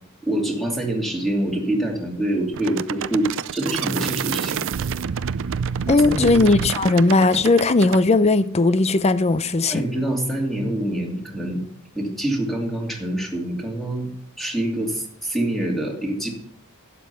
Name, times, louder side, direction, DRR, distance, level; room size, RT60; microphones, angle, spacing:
voice 1, 0.2-4.6 6.1-6.5 9.7-11.6 11.9-14.1 14.4-16.3, right 1 dB, ahead, 2.7 m, -25 dB
sound 1, 2.5-8.0, right 7 dB, 65° right, 0.5 m, -28 dB
voice 2, 5.9-9.8, left 3 dB, 30° left, 0.5 m, -17 dB
12.0 x 8.5 x 5.7 m
head